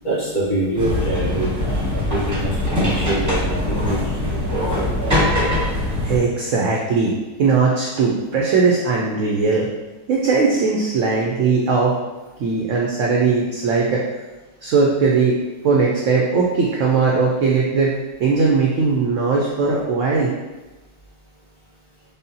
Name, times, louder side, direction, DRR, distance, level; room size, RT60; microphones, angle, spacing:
voice 1, 0.0-5.4, right 1 dB, 50° left, -12 dB, 1.8 m, -25 dB
sound 1, 0.7-6.2, left 1 dB, 15° right, 0.6 m, -22 dB
voice 2, 6.0-7.1 7.4-9.7 10.1-11.9 12.4-14.0 14.6-15.4 15.6-17.9 18.2-20.3, right 4 dB, 75° right, -2 dB, 0.7 m, -19 dB
5.2 x 2.0 x 2.7 m, 1.1 s
omnidirectional pair, 1.8 m